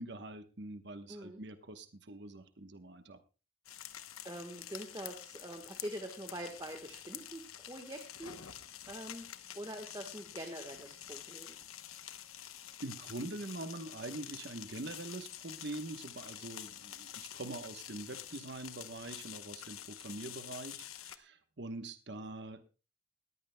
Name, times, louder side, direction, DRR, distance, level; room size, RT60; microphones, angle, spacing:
voice 1, 0.0-3.2 12.8-22.6, right 2 dB, 55° right, 9 dB, 1.1 m, -44 dB
voice 2, 1.1-1.4 4.2-8.6 8.9-11.6, right 1 dB, 20° right, 4 dB, 1.3 m, -45 dB
sound 1, 3.7-21.2, left 11 dB, 90° left, 1.0 m, -48 dB
20.5 x 15.0 x 2.2 m, 0.32 s
head